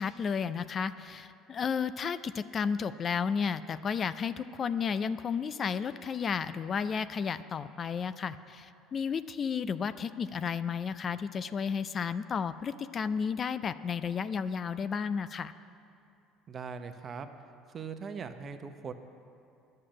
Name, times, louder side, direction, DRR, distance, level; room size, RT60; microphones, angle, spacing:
voice 1, 0.0-15.5, left 6 dB, 40° left, 13 dB, 0.4 m, -32 dB
voice 2, 16.5-17.3 17.7-18.9, right 6 dB, 40° right, 8 dB, 0.8 m, -40 dB
10.0 x 6.6 x 8.7 m, 2.6 s
hypercardioid pair, 65°, 0 cm